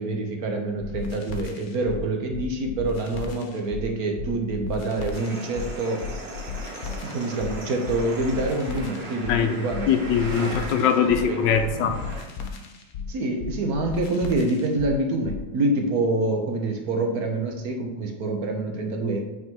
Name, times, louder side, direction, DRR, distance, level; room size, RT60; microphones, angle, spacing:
voice 1, 0.0-6.0 7.0-9.9 10.4-10.5 11.0-11.4 13.1-19.2, right 2 dB, 60° right, 3 dB, 1.4 m, -26 dB
sound 1, 0.8-15.5, left 5 dB, 60° left, 1.2 m, -35 dB
sound 2, 5.1-12.2, right 1 dB, 35° right, 1.7 m, -37 dB
voice 2, 9.9-12.0, left 7 dB, 90° left, 8 dB, 1.4 m, -22 dB
8.6 x 3.8 x 4.6 m, 1.2 s
omnidirectional pair, 1.9 m